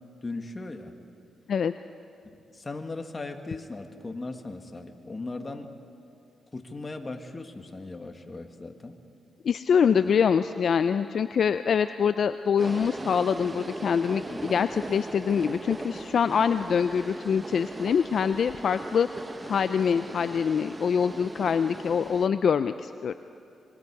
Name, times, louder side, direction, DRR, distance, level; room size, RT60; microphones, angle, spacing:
voice 1, 0.2-0.9 2.5-5.7 6.5-9.0 10.0-10.1, left 3 dB, 30° left, 5 dB, 1.8 m, -38 dB
voice 2, 9.4-19.1 19.5-23.2, left 7 dB, 65° left, 11 dB, 0.4 m, -25 dB
sound 1, 12.6-22.3, right 2 dB, 25° right, 0.9 m, -39 dB
25.5 x 23.5 x 4.8 m, 2.6 s
cardioid pair, 70°, 0 cm